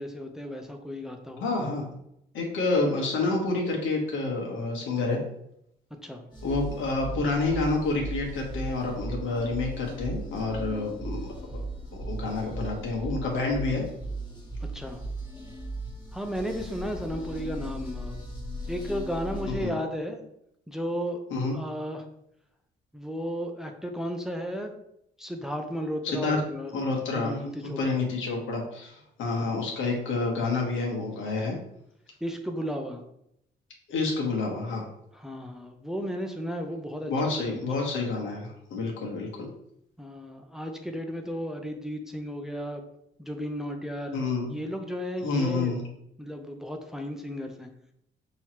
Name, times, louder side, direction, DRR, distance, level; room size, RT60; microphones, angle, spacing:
voice 1, 0.0-1.4 5.9-6.2 14.6-15.0 16.1-18.2 18.7-20.2 20.7-21.2 21.5-22.0 22.9-24.7 25.2-26.7 27.1-28.0 29.4-29.5 32.2-33.0 35.1-37.8 40.0-42.8 43.2-44.3 44.5-45.8 46.2-47.7, equal, ahead, 4 dB, 0.6 m, -34 dB
voice 2, 1.4-1.9 2.3-5.2 6.4-11.6 11.9-13.8 19.5-19.8 21.3-21.6 26.0-26.4 26.7-31.6 33.9-34.9 37.1-39.5 44.1-44.5 45.2-45.8, left 3 dB, 80° left, 0 dB, 1.3 m, -29 dB
sound 1, 6.3-19.7, right 1 dB, 20° left, 1.6 m, -37 dB
5.5 x 3.1 x 3.0 m, 0.76 s
cardioid pair, 90°, 20 cm